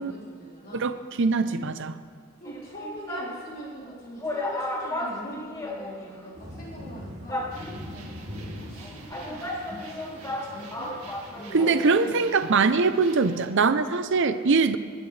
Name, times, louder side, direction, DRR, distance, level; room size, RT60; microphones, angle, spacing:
voice 1, 0.0-0.9 1.5-1.7 2.4-7.5 8.5-11.0 11.4-12.6 12.9-13.0, right 1 dB, 40° left, -6 dB, 4.3 m, -42 dB
voice 2, 0.7-2.0 11.5-14.8, right 4 dB, 55° right, 11 dB, 0.6 m, -22 dB
sound 1, 2.5-3.4 3.9-4.0 4.2-6.3 6.5-6.6 7.3-8.0 8.8-11.9 12.2-12.3, left 1 dB, 15° left, 1.5 m, -34 dB
sound 2, 6.3-11.4, equal, 30° right, 2.9 m, -42 dB
sound 3, 7.5-13.4, right 4 dB, 75° right, 1.9 m, -48 dB
21.5 x 12.5 x 3.3 m, 2.3 s
head